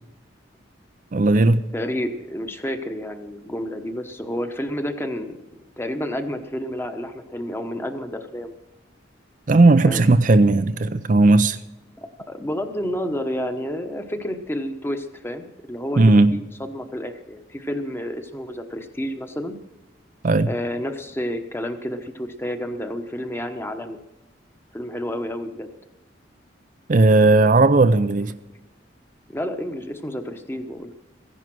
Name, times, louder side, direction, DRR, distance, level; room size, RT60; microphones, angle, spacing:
voice 1, 1.1-1.6 9.5-11.6 16.0-16.3 20.2-20.5 26.9-28.3, right 2 dB, 45° right, 0.5 m, -16 dB
voice 2, 1.7-5.4 5.8-8.5 9.8-10.0 12.0-16.0 16.3-19.5 20.5-24.0 24.7-25.7 29.3-30.9, equal, 10° left, 1.1 m, -30 dB
15.5 x 11.0 x 6.1 m
head